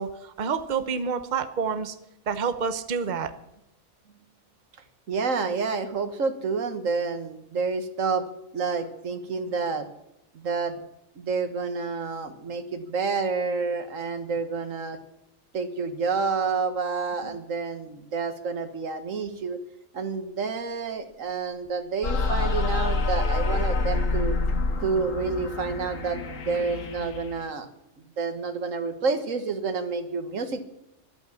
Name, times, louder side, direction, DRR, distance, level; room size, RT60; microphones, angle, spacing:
voice 1, 0.0-2.0 2.3-3.3 17.2-17.4, right 6 dB, 40° right, 10 dB, 1.0 m, -28 dB
voice 2, 5.1-8.3 8.5-9.9 10.3-10.8 11.2-15.0 15.5-19.6 19.9-24.3 24.8-27.7 28.2-30.6, right 4 dB, 85° right, 9 dB, 1.8 m, -29 dB
sound 1, 22.0-27.5, left 3 dB, 85° left, 1.7 m, -27 dB
13.0 x 12.0 x 7.1 m, 0.84 s
omnidirectional pair, 1.3 m